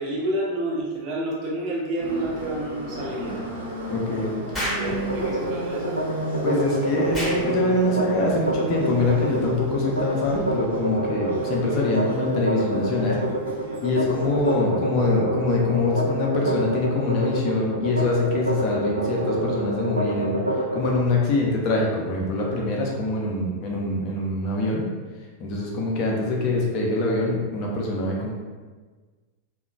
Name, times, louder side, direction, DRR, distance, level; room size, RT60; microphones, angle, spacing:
voice 1, 0.0-3.4 4.5-6.0, right 1 dB, 40° right, -4 dB, 0.7 m, -29 dB
Subway metro underground, 2.0-14.5, right 1 dB, 70° right, 0.9 m, -34 dB
voice 2, 3.9-4.3 6.4-13.2 13.8-20.4 20.7-24.8 25.4-28.3, left 2 dB, 40° left, -2 dB, 0.5 m, -24 dB
Explosion, 4.5-4.9 7.1-7.4, equal, 10° left, 0.8 m, -28 dB
sound 1, 5.0-21.0, right 1 dB, 90° right, 0.3 m, -27 dB
2.8 x 2.0 x 2.5 m, 1.4 s
figure-of-eight pair, 90°, 0 cm